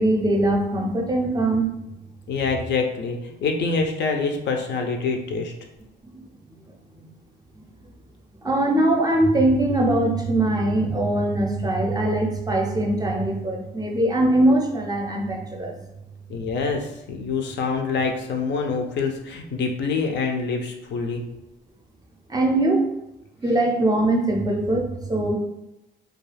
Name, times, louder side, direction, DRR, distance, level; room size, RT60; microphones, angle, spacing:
voice 1, 0.0-1.7 6.1-6.2 8.4-15.7 22.3-22.9 23.4-25.4, right 1 dB, 20° right, 1 dB, 0.5 m, -21 dB
voice 2, 2.3-5.5 16.3-21.2, left 4 dB, 65° left, 3 dB, 0.5 m, -26 dB
2.3 x 2.3 x 3.2 m, 0.92 s
cardioid pair, 90°, 20 cm